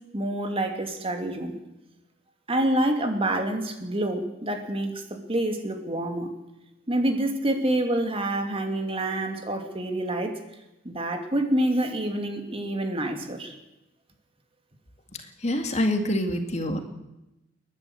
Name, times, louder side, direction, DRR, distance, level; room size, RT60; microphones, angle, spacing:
voice 1, 0.1-1.6 2.5-4.9 5.3-6.3 6.9-10.4 10.8-13.5, right 1 dB, 30° right, 5 dB, 2.6 m, -27 dB
voice 2, 15.4-16.8, left 1 dB, 35° left, 5 dB, 2.2 m, -25 dB
30.0 x 11.0 x 8.0 m, 0.94 s
head